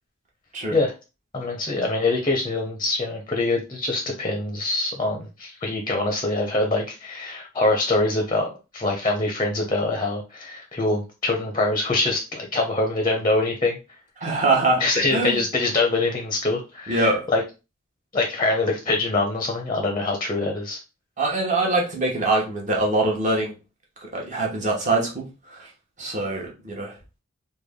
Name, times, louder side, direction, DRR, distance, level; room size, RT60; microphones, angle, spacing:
voice 1, 1.3-8.5 8.7-13.8 14.8-17.4 18.1-20.8, left 2 dB, 25° left, 2 dB, 0.5 m, -24 dB
voice 2, 14.2-14.8 15.1-15.4 16.9-17.3 21.2-23.5 24.0-25.7 26.0-27.0, right 2 dB, 35° right, -2 dB, 1.0 m, -23 dB
3.3 x 2.2 x 3.5 m, 0.30 s
head